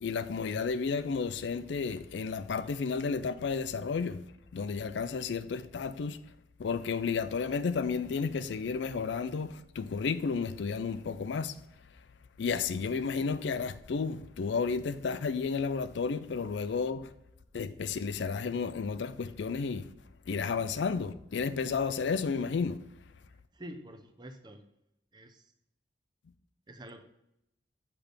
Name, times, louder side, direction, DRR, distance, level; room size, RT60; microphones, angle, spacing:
voice 1, 0.0-4.2 4.5-6.2 6.6-11.5 12.4-17.1 17.5-19.9 20.3-22.8, left 5 dB, 70° left, 0.4 m, -32 dB
voice 2, 23.6-24.6 25.1-25.4 26.7-27.0, right 1 dB, 25° right, 0.7 m, -47 dB
8.1 x 5.9 x 3.4 m
head